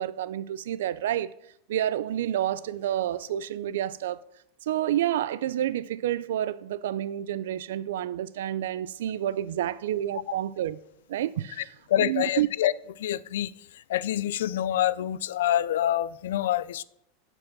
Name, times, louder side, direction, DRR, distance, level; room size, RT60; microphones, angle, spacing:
voice 1, 0.0-1.3 1.7-4.2 4.6-10.8 11.1-11.7 12.0-12.5, right 11 dB, 85° right, 0.3 m, -29 dB
voice 2, 11.9-13.5 13.9-16.8, left 12 dB, 85° left, 0.3 m, -26 dB
7.3 x 4.8 x 6.1 m
supercardioid pair, 165°, 0 cm